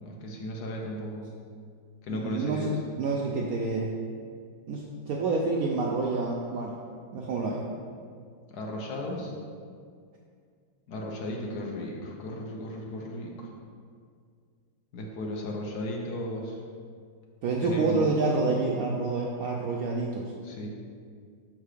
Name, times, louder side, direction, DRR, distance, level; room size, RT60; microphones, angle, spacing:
voice 1, 0.0-1.3 2.0-2.7 8.5-9.3 10.9-13.5 14.9-16.6 17.6-18.1 20.4-20.7, left 1 dB, 65° left, -1 dB, 1.2 m, -35 dB
voice 2, 2.1-3.9 4.7-6.8 7.1-7.6 17.4-20.3, right 3 dB, 75° right, -1 dB, 0.8 m, -28 dB
5.6 x 3.7 x 4.8 m, 2.1 s
omnidirectional pair, 2.0 m